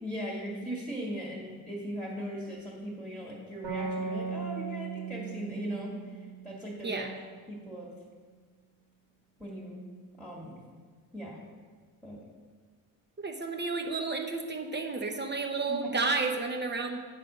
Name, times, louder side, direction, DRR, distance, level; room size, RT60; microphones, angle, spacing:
voice 1, 0.0-7.9 9.4-9.8 10.2-10.6 11.1-11.4 12.0-12.2 15.7-15.9, equal, ahead, -5 dB, 2.1 m, -39 dB
sound 1, 3.6-7.1, right 5 dB, 85° right, 2.7 m, -37 dB
voice 2, 13.2-17.0, right 3 dB, 25° right, 4 dB, 0.9 m, -31 dB
9.4 x 4.2 x 6.3 m, 1.5 s
cardioid pair, 90°, 38 cm